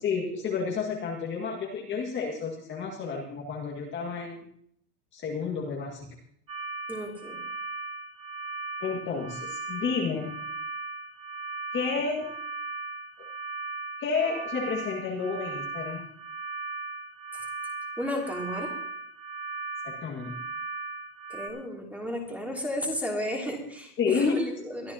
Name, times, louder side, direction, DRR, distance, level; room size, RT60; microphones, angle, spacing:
voice 1, 0.0-4.5 5.1-6.1 8.8-10.4 11.7-12.3 14.0-16.1 19.8-20.3 24.0-24.4, left 5 dB, 25° left, -2 dB, 1.9 m, -30 dB
sound 1, 6.5-21.5, right 4 dB, 30° right, 2.8 m, -37 dB
voice 2, 6.9-7.4 18.0-18.7 21.3-24.9, equal, 5° right, -1 dB, 2.8 m, -33 dB
23.0 x 13.0 x 2.9 m, 0.65 s
supercardioid pair, 155°, 47 cm